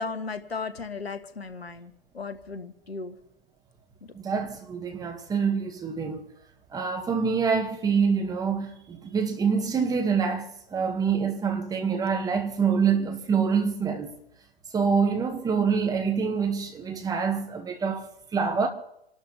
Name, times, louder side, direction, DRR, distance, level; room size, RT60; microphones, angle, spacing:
voice 1, 0.0-3.1 4.0-4.1, left 4 dB, 80° left, 1.6 m, -36 dB
voice 2, 4.2-6.3 6.7-14.1 14.7-18.1 18.3-18.7, right 6 dB, 10° right, 1.9 m, -26 dB
29.0 x 12.5 x 3.4 m
figure-of-eight pair, 115°, 30 cm